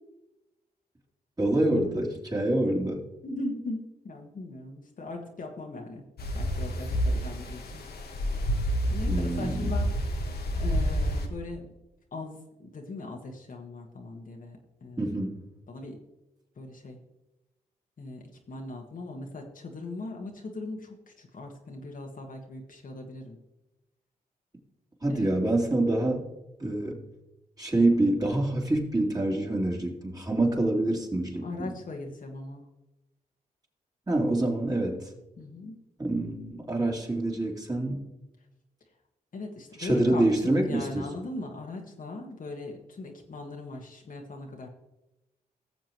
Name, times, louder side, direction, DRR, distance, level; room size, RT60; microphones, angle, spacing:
voice 1, 1.4-3.0 9.1-9.7 15.0-15.4 25.0-26.3 26.6-27.0 27.6-31.7 34.1-35.1 36.0-38.0 39.8-41.0, right 1 dB, 25° right, -2 dB, 3.0 m, -26 dB
voice 2, 3.2-6.1 6.3-7.8 8.9-9.9 10.6-11.7 12.1-15.0 15.7-16.0 16.6-17.0 18.0-23.4 25.1-25.3 31.4-32.6 35.4-35.8 39.3-44.7, left 2 dB, 55° left, 1 dB, 1.6 m, -39 dB
sound 1, 6.2-11.3, equal, 70° left, 1.3 m, -29 dB
17.5 x 7.0 x 3.1 m, 0.97 s
cardioid pair, 55°, 17 cm